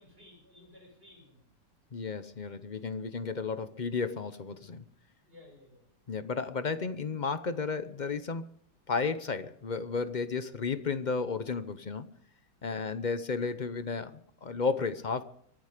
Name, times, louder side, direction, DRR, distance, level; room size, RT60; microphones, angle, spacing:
voice 1, 0.0-1.4 5.3-5.8, left 1 dB, 30° right, 6.8 m, -55 dB
voice 2, 1.9-4.8 6.1-8.5 8.9-12.1 12.6-15.2, left 4 dB, 45° left, 0.6 m, -33 dB
24.0 x 10.5 x 5.1 m
omnidirectional pair, 2.0 m